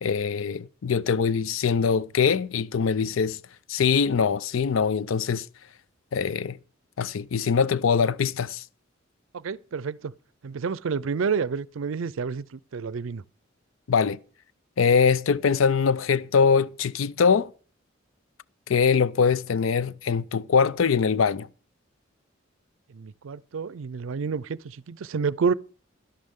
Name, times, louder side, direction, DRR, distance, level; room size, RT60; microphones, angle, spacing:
voice 1, 0.0-3.4 3.7-5.5 6.1-6.6 7.0-8.6 13.9-14.2 14.8-17.5 18.7-21.5, left 6 dB, 85° left, 0.5 m, -23 dB
voice 2, 9.3-10.1 10.4-13.2 22.9-25.5, right 5 dB, 80° right, 0.5 m, -29 dB
11.5 x 11.5 x 3.6 m
head